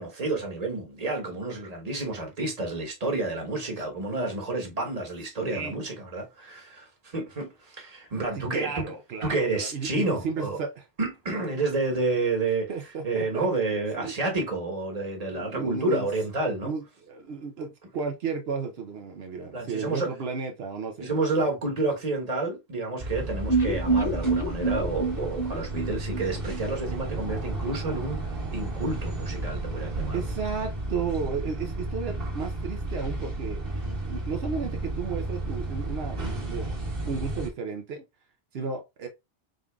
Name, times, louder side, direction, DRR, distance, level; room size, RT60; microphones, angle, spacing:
voice 1, 0.0-8.8 9.2-10.6 11.0-12.7 13.0-16.7 19.5-20.1 21.0-30.3, right 2 dB, 40° right, 1.3 m, -30 dB
voice 2, 8.5-10.8 12.7-14.1 15.3-16.1 16.6-21.1 21.4-21.5 30.1-33.6 34.1-38.0 38.5-39.1, right 5 dB, 80° right, 1.0 m, -34 dB
sound 1, 23.0-37.5, right 2 dB, 65° right, 1.6 m, -33 dB
sound 2, 23.5-27.4 27.6-27.7 28.0-28.1, right 3 dB, 25° left, 0.7 m, -28 dB
5.1 x 3.7 x 2.3 m
omnidirectional pair, 1.0 m